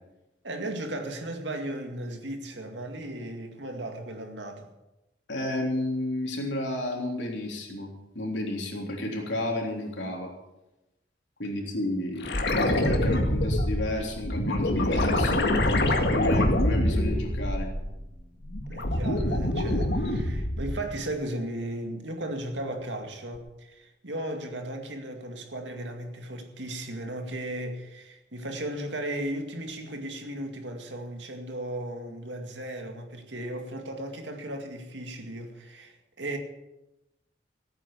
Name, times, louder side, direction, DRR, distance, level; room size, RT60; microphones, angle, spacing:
voice 1, 0.4-4.7 18.7-36.4, right 1 dB, 85° right, 2.2 m, -36 dB
voice 2, 5.3-10.3 11.4-15.7 16.1-17.7, left 1 dB, 90° left, 3.5 m, -32 dB
sound 1, 12.2-18.0 18.4-20.9 23.4-23.5, left 1 dB, 65° left, 1.9 m, -25 dB
15.5 x 9.0 x 7.0 m
head